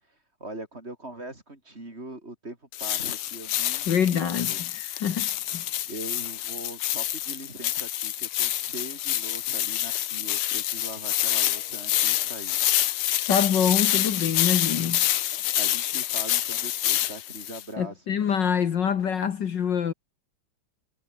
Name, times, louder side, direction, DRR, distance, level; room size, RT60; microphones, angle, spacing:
voice 1, 0.4-4.7 5.9-12.6 13.1-13.2 15.6-18.2, right 2 dB, 30° right, 4.6 m, -41 dB
sound 1, 2.7-17.6, left 13 dB, 75° left, 1.8 m, -27 dB
voice 2, 3.9-5.7 13.3-15.0 17.8-19.9, left 8 dB, 60° left, 1.9 m, -25 dB
omnidirectional pair, 2.4 m